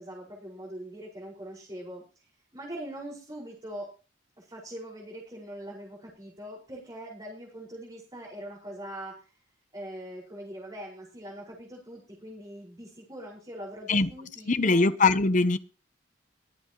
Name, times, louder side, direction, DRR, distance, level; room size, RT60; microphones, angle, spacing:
voice 1, 0.0-2.0 2.5-3.9 4.4-9.2 9.7-14.9, right 1 dB, 20° right, 5.2 m, -42 dB
voice 2, 14.5-15.6, left 3 dB, 40° left, 0.9 m, -22 dB
23.0 x 8.2 x 3.1 m
head